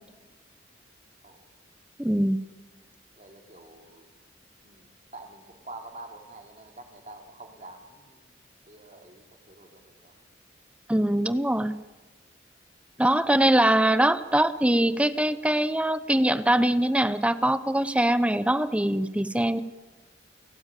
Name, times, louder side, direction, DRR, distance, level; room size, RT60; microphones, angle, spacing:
voice 1, 2.0-2.4 10.9-11.8 13.0-19.6, right 1 dB, 5° right, 14 dB, 0.8 m, -23 dB
voice 2, 3.2-4.1 4.6-8.3 8.6-10.2, right 2 dB, 35° right, 4 dB, 3.4 m, -47 dB
29.5 x 17.5 x 9.1 m, 1.3 s
head